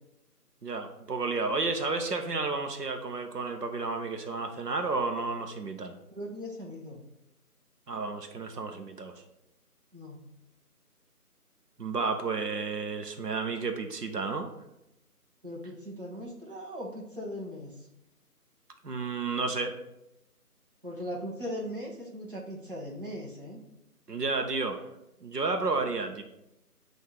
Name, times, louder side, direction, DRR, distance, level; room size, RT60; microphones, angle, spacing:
voice 1, 0.6-5.9 7.9-9.1 11.8-14.5 18.8-19.7 24.1-24.8 25.2-26.2, right 3 dB, 85° right, 5 dB, 0.9 m, -31 dB
voice 2, 6.1-7.0 9.9-10.2 15.4-17.8 20.8-23.6, equal, 35° right, -4 dB, 1.0 m, -39 dB
7.7 x 2.7 x 4.5 m, 0.87 s
figure-of-eight pair, 180°, 47 cm